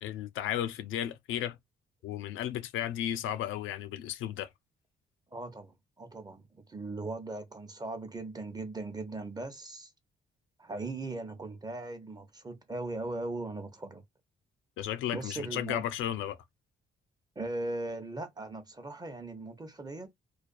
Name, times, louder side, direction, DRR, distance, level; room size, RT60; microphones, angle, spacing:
voice 1, 0.0-1.6 2.0-4.5 14.8-16.4, left 11 dB, 80° left, 0.4 m, -34 dB
voice 2, 5.3-9.9 10.6-14.0 15.1-15.8 17.4-20.1, right 2 dB, 20° right, 0.7 m, -39 dB
2.4 x 2.2 x 2.4 m
cardioid pair, 90°, 20 cm